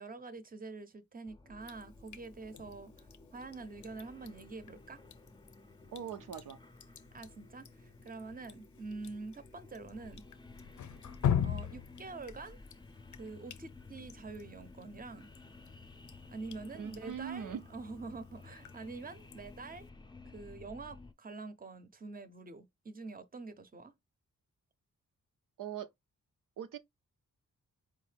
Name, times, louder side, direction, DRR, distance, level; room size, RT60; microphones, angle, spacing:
voice 1, 0.0-5.0 7.1-10.2 11.4-12.6 13.1-15.3 16.3-19.9 20.2-23.9, right 3 dB, 25° right, 0.7 m, -46 dB
sound 1, 1.3-21.1, left 3 dB, 15° left, 0.6 m, -54 dB
Drip, 1.6-19.9, left 9 dB, 65° left, 0.6 m, -42 dB
voice 2, 5.9-6.6 16.7-17.6 25.6-25.9 26.6-26.8, right 8 dB, 80° right, 0.6 m, -41 dB
4.7 x 2.6 x 3.3 m
wide cardioid pair, 90°, 32 cm